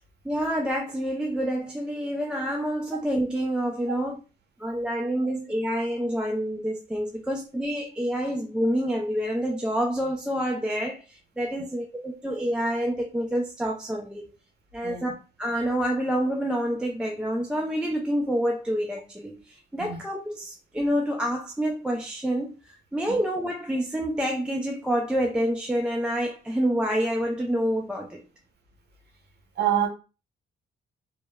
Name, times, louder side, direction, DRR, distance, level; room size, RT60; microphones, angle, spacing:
voice 1, 0.2-4.2 4.6-14.3 14.7-15.1 15.4-22.5 22.9-28.2, equal, 5° right, 0.4 m, -27 dB
voice 2, 29.6-29.9, right 10 dB, 55° right, 0.7 m, -25 dB
2.9 x 2.0 x 2.2 m
cardioid pair, 90°, 20 cm